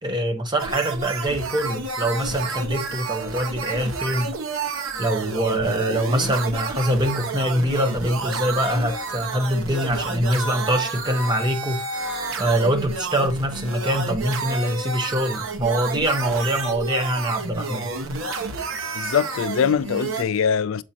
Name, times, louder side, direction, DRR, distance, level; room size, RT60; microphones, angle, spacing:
voice 1, 0.0-4.3 5.0-11.8 12.4-17.9, right 1 dB, 20° right, 1.0 m, -24 dB
sound 1, 0.6-20.2, right 3 dB, 75° right, 1.2 m, -30 dB
voice 2, 18.9-20.8, left 7 dB, 70° left, 0.4 m, -22 dB
7.4 x 4.9 x 2.8 m
head